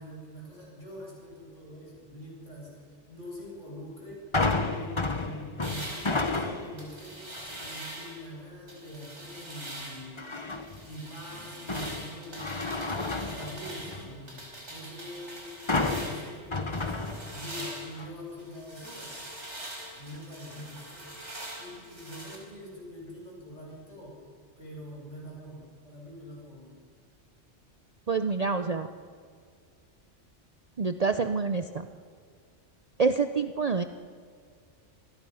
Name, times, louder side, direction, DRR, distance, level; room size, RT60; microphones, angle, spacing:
voice 1, 0.0-4.2 4.6-7.3 7.6-10.2 10.8-13.0 13.3-19.2 20.0-21.0 21.6-24.2 24.6-26.8, left 1 dB, 85° left, -4 dB, 8.4 m, -44 dB
sound 1, 4.3-6.9 7.3-7.7 10.2-10.8 11.3-14.2 15.7-17.6 18.0-18.1, left 3 dB, 25° left, 1.1 m, -31 dB
sound 2, 5.6-8.3 8.7-10.1 10.5-16.4 16.8-22.4, right 1 dB, 70° right, 5.1 m, -43 dB
voice 2, 28.1-28.9 30.8-31.9 33.0-33.8, right 4 dB, 40° right, 8 dB, 0.7 m, -27 dB
27.0 x 21.0 x 5.7 m, 2.1 s
omnidirectional pair, 1.2 m